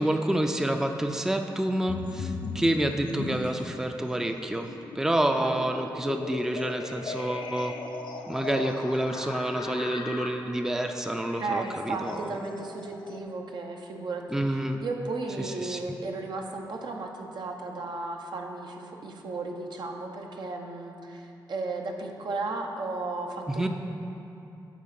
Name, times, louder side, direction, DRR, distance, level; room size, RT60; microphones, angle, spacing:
voice 1, 0.0-4.7 5.0-7.7 8.3-12.4 14.3-14.8 15.4-15.8 23.6-23.7, right 1 dB, 5° right, 5 dB, 0.4 m, -28 dB
sound 1, 1.9-3.8 4.2-13.2, left 4 dB, 70° left, 0.5 m, -39 dB
voice 2, 11.4-23.7, right 3 dB, 70° right, 2 dB, 0.8 m, -35 dB
8.5 x 4.2 x 5.8 m, 2.8 s
cardioid pair, 80°, 8 cm